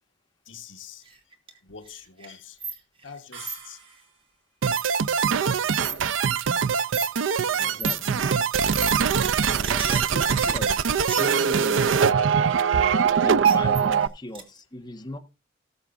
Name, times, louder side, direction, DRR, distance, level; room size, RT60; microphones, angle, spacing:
voice 1, 0.4-1.1 1.6-2.6 3.0-3.8 5.0-5.1 7.5-8.1, left 6 dB, 80° left, 1.3 m, -45 dB
sound 1, 1.1-1.6 1.9-3.2 3.5-3.6 4.7-5.1 5.8-6.0 6.4-6.5 6.9-7.1 7.8-8.0 8.5-8.9 9.2-11.7 13.2-14.1 14.4-14.5, right 4 dB, 30° right, 2.3 m, -34 dB
sound 2, 3.3-4.4, right 5 dB, 70° right, 6.8 m, -45 dB
sound 3, 4.6-14.1, right 6 dB, 90° right, 0.5 m, -22 dB
voice 2, 7.6-8.3 9.5-10.7 11.2-12.1 13.1-15.2, left 1 dB, 20° left, 1.4 m, -38 dB
18.5 x 7.0 x 2.6 m
head